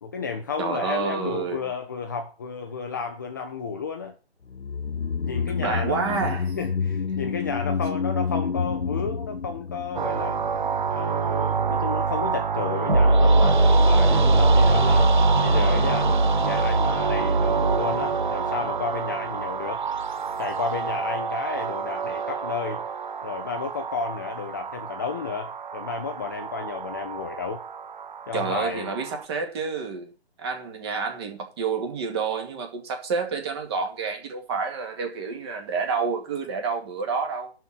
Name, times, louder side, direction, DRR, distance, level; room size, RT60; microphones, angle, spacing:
voice 1, 0.0-4.1 5.2-6.2 6.6-10.4 10.9-15.1 15.4-16.1 16.4-19.8 20.4-22.8 23.2-27.6 28.3-29.0, left 5 dB, 20° left, 0.7 m, -32 dB
voice 2, 0.6-1.6 5.6-6.6 28.3-30.1 30.4-37.5, right 5 dB, 25° right, 2.2 m, -29 dB
sound 1, 4.5-10.9 11.2-11.3, left 5 dB, 85° left, 0.7 m, -29 dB
sound 2, 10.0-29.2, right 6 dB, 50° right, 0.6 m, -28 dB
sound 3, 12.9-19.4, right 2 dB, 85° right, 3.0 m, -21 dB
11.5 x 4.5 x 7.7 m
figure-of-eight pair, 145°, 32 cm